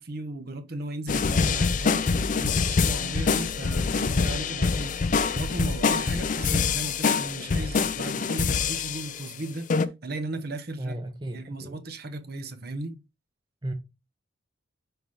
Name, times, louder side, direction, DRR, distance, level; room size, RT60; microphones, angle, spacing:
voice 1, 0.0-10.9 11.3-13.0, right 2 dB, 55° right, 1.0 m, -36 dB
sound 1, 1.1-9.3 9.7-9.9, left 5 dB, 40° left, 0.4 m, -25 dB
voice 2, 10.8-11.8 13.6-13.7, right 1 dB, 25° right, 0.7 m, -34 dB
6.3 x 4.9 x 3.1 m
head